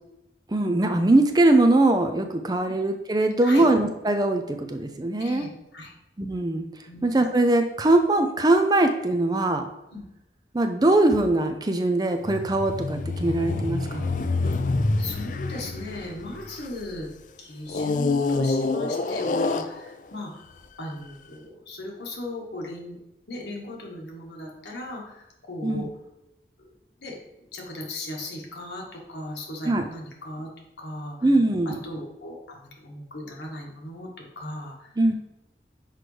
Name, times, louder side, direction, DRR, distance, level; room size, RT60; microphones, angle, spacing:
voice 1, 0.5-5.4 6.2-6.7 7.0-9.6 10.5-14.2 25.6-25.9 29.6-29.9 31.2-31.8 35.0-35.1, right 2 dB, 25° right, 6 dB, 0.4 m, -21 dB
voice 2, 5.2-5.9 6.8-7.0 9.9-10.0 15.0-17.1 17.4-20.4 20.8-23.0 23.3-25.9 26.6-26.7 27.0-30.5 30.8-31.3 31.6-34.1 34.3-35.0, left 1 dB, 80° left, -1 dB, 1.4 m, -37 dB
sound 1, 12.2-17.0 17.7-20.2 20.9-21.0, left 3 dB, 45° left, 0.3 m, -27 dB
6.0 x 4.9 x 3.2 m, 0.92 s
head